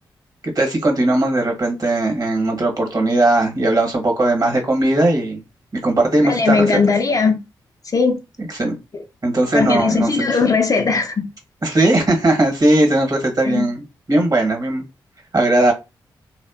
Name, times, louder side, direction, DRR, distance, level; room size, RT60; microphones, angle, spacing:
voice 1, 0.4-5.4 5.8-6.7 8.4-8.8 9.2-10.4 11.6-14.8 15.3-15.7, right 2 dB, 45° right, 1.0 m, -18 dB
voice 2, 6.2-7.4 7.9-8.2 9.5-11.3 13.4-13.7, left 4 dB, 40° left, 0.4 m, -18 dB
2.5 x 2.0 x 2.3 m
supercardioid pair, 45°, 9 cm